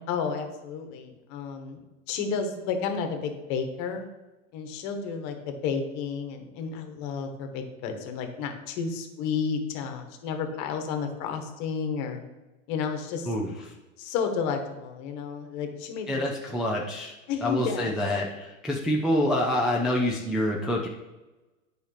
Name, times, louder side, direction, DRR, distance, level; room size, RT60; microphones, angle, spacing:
voice 1, 0.1-4.1 4.5-12.2 12.7-13.3 14.0-16.2 17.3-18.0, left 6 dB, 45° left, 6 dB, 1.3 m, -31 dB
voice 2, 13.3-13.7 16.1-17.1 17.4-20.9, left 1 dB, ahead, -4 dB, 0.4 m, -27 dB
8.8 x 5.1 x 3.3 m, 1.1 s
hypercardioid pair, 120°, 41 cm